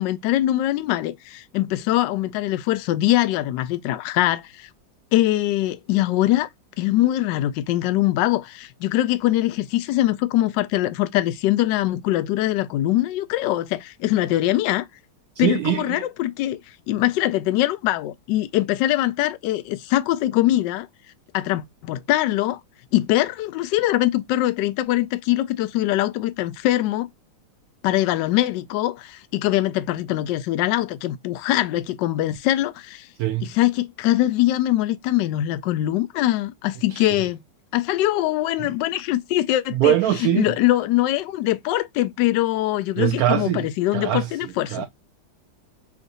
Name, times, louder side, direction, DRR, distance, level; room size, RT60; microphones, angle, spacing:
voice 1, 0.0-4.7 5.1-6.5 6.8-14.9 15.4-16.6 16.9-20.9 21.3-22.6 22.9-27.1 27.8-33.1 33.4-37.4 37.7-39.9 40.2-44.9, left 15 dB, 75° left, 1.2 m, -22 dB
voice 2, 15.4-16.1 33.2-33.5 36.9-37.1 38.6-38.7 39.7-40.5 43.0-43.7 43.9-44.9, right 13 dB, 75° right, 0.8 m, -23 dB
6.5 x 2.6 x 2.6 m
omnidirectional pair, 2.1 m